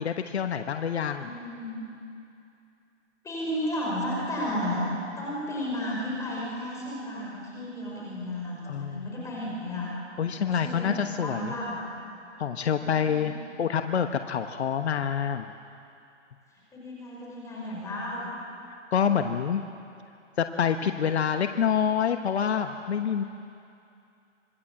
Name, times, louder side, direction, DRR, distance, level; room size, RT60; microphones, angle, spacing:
voice 1, 0.0-1.3 8.7-9.1 10.2-11.5 12.4-13.3 13.6-15.5 18.9-19.6 20.4-23.2, left 7 dB, 60° left, 7 dB, 1.2 m, -27 dB
voice 2, 1.2-1.8 3.2-4.8 5.2-9.9 10.4-11.8 12.8-13.4 16.7-18.3, left 1 dB, 10° left, -4 dB, 5.5 m, -33 dB
26.5 x 21.0 x 7.6 m, 2.6 s
hypercardioid pair, 150°, 37 cm